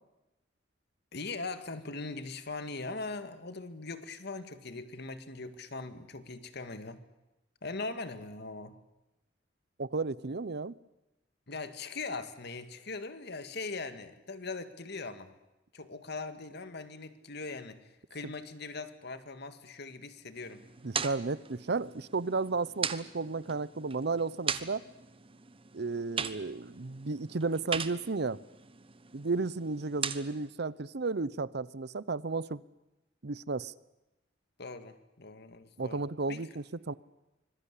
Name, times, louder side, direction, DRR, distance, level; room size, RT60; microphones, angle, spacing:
voice 1, 1.1-7.0 7.6-8.7 11.5-15.3 15.7-20.6 34.6-36.4, left 3 dB, 60° left, 10 dB, 2.0 m, -41 dB
voice 2, 9.8-10.8 20.8-24.8 25.7-28.4 29.1-32.6 33.2-33.7 35.8-36.9, right 3 dB, 60° right, 19 dB, 0.8 m, -33 dB
sound 1, 20.4-30.5, right 6 dB, 30° right, 1.1 m, -40 dB
25.5 x 21.5 x 8.4 m, 0.98 s
head